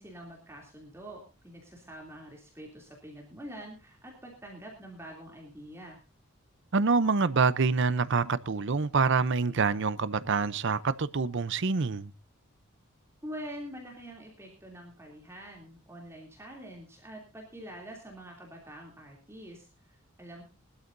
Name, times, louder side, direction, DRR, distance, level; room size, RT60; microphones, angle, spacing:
voice 1, 0.0-6.0 13.2-20.4, equal, 10° right, 2.8 m, -45 dB
voice 2, 6.7-12.1, right 4 dB, 55° right, 0.6 m, -26 dB
22.0 x 12.5 x 2.6 m
head